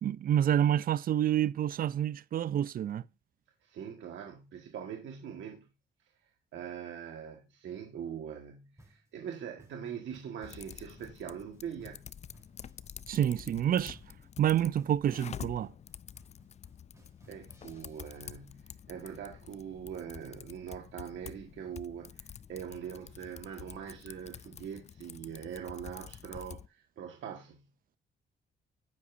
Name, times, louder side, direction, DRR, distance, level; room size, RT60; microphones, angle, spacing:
voice 1, 0.0-3.0 13.1-14.0 14.4-15.7, right 10 dB, 45° right, 0.4 m, -28 dB
voice 2, 3.6-5.7 6.5-12.0 17.3-27.7, right 8 dB, 75° right, 1.5 m, -42 dB
sound 1, 8.8-18.3, right 1 dB, 15° right, 3.5 m, -62 dB
Typing, 10.4-26.7, left 8 dB, 35° left, 0.4 m, -48 dB
9.2 x 8.6 x 2.6 m
cardioid pair, 90°, 20 cm